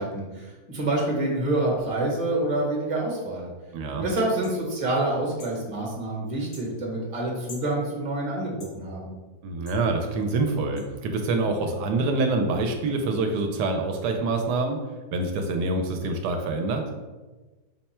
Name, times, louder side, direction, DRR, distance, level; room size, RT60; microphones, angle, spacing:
voice 1, 0.0-3.5 4.0-9.1, right 2 dB, 25° right, -2 dB, 0.9 m, -27 dB
voice 2, 3.7-4.1 9.4-14.8 15.1-16.8, right 3 dB, 80° right, 4 dB, 1.1 m, -26 dB
sound 1, 4.4-4.6 5.4-5.6 6.5-6.7 7.5-7.7 8.6-8.8 9.7-9.8 10.8-10.9, left 3 dB, 80° left, 1.5 m, -45 dB
5.8 x 2.2 x 4.2 m, 1.2 s
omnidirectional pair, 1.8 m